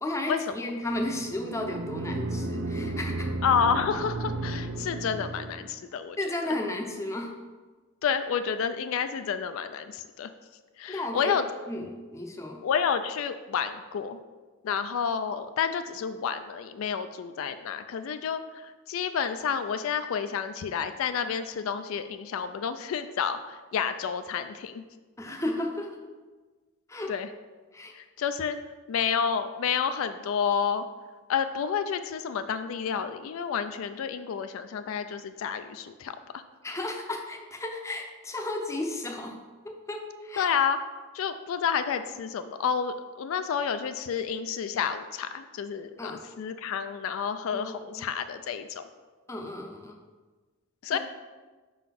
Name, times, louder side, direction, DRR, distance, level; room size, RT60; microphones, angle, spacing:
voice 1, 0.0-3.3 6.2-7.4 10.9-11.3 11.7-12.6 25.2-26.0 26.9-27.1 27.7-27.9 36.6-39.4 39.6-40.5 46.0-46.2 47.5-48.1 49.3-50.0 50.9-51.0, left 1 dB, 15° left, 2 dB, 0.5 m, -34 dB
sound 1, 0.9-5.8, right 2 dB, 50° right, 0.4 m, -33 dB
voice 2, 3.4-6.2 6.4-6.5 8.0-10.3 10.8-11.5 12.6-14.2 14.6-24.8 27.1-27.3 27.9-28.6 28.9-30.8 31.3-36.4 40.4-40.8 41.1-46.1 46.4-48.8 50.8-51.0, left 7 dB, 70° left, 10 dB, 0.3 m, -30 dB
5.1 x 3.9 x 5.7 m, 1.3 s
head